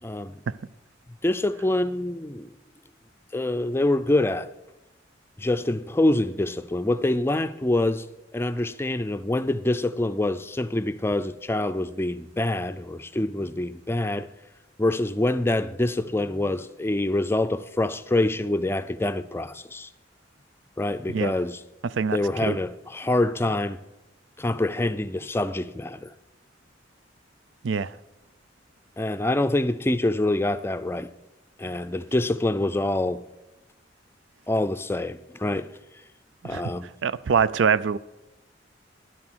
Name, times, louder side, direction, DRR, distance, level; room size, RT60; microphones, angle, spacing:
voice 1, 0.0-0.4 1.2-2.5 3.3-4.5 5.4-8.0 8.3-14.3 14.8-19.9 20.8-21.6 22.1-23.8 24.4-26.1 29.0-31.1 31.6-33.2 34.5-35.7 36.4-36.9, left 1 dB, 15° left, 0.4 m, -25 dB
voice 2, 37.0-38.0, right 6 dB, 75° right, 0.4 m, -23 dB
11.0 x 10.5 x 6.2 m
head